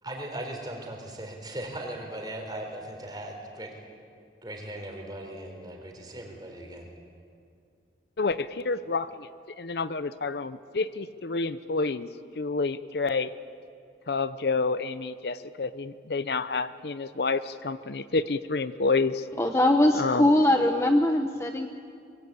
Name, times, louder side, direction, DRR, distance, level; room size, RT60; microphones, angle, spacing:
voice 1, 0.0-3.7 4.4-6.9, right 1 dB, 25° right, 2 dB, 3.9 m, -38 dB
voice 2, 8.2-9.3 9.6-12.1 12.4-13.3 14.1-19.2 19.9-20.3, left 3 dB, 60° left, 14 dB, 0.6 m, -29 dB
voice 3, 19.4-21.7, left 1 dB, 15° left, 5 dB, 0.8 m, -21 dB
24.0 x 22.5 x 8.5 m, 2.3 s
head